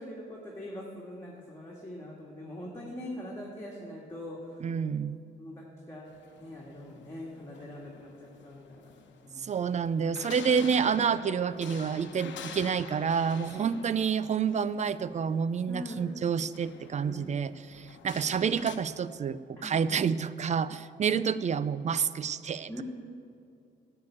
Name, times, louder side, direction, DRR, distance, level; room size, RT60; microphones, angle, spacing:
voice 1, 0.0-4.7 5.4-8.9 9.2-9.5 12.3-12.8 13.5-13.8 15.7-16.1 16.9-17.5 19.6-19.8 22.7-22.8, left 1 dB, 15° left, -4 dB, 1.9 m, -43 dB
voice 2, 4.6-5.2 9.4-22.7, right 6 dB, 35° right, 16 dB, 0.4 m, -29 dB
sound 1, 6.1-18.8, left 7 dB, 70° left, 1.0 m, -48 dB
10.5 x 6.8 x 8.2 m, 2.5 s
cardioid pair, 90°, 20 cm